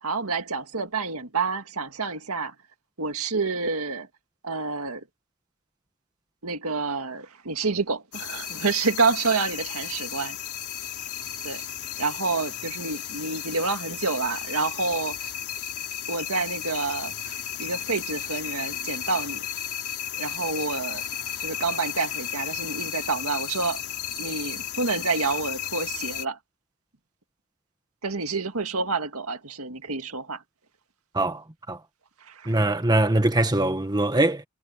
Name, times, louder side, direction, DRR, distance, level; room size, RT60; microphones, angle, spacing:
voice 1, 0.0-2.5 3.0-4.1 4.4-5.1 6.4-10.4 11.4-11.6 12.0-15.3 16.1-19.5 20.2-21.0 21.4-23.8 24.2-26.4 28.0-30.4 32.2-32.6, right 4 dB, 70° right, 2.1 m, -28 dB
sound 1, 8.1-26.2, left 10 dB, 75° left, 4.9 m, -34 dB
voice 2, 31.1-31.8 32.4-34.4, right 1 dB, 20° right, 1.4 m, -22 dB
head